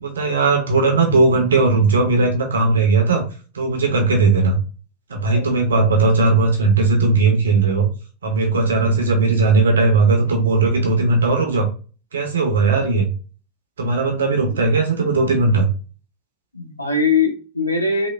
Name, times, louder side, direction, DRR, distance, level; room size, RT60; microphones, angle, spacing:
voice 1, 0.0-3.2 3.5-4.6 5.1-7.9 8.2-11.7 12.1-13.1 13.8-15.7, right 3 dB, 65° right, 2 dB, 0.6 m, -17 dB
voice 2, 5.3-5.9 14.4-14.6 16.5-18.1, left 4 dB, 85° left, 2 dB, 0.6 m, -22 dB
3.1 x 2.1 x 2.3 m, 0.35 s
figure-of-eight pair, 90°, 0 cm